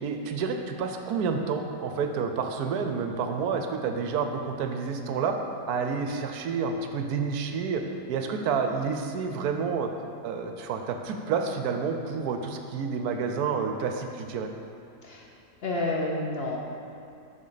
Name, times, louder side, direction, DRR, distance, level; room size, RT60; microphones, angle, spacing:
voice 1, 0.0-5.4 5.7-7.8 8.1-9.9 10.2-14.5, right 5 dB, 70° right, 5 dB, 1.0 m, -29 dB
voice 2, 15.6-16.6, left 2 dB, 65° left, -1 dB, 0.6 m, -29 dB
7.3 x 6.5 x 4.0 m, 2.6 s
omnidirectional pair, 1.9 m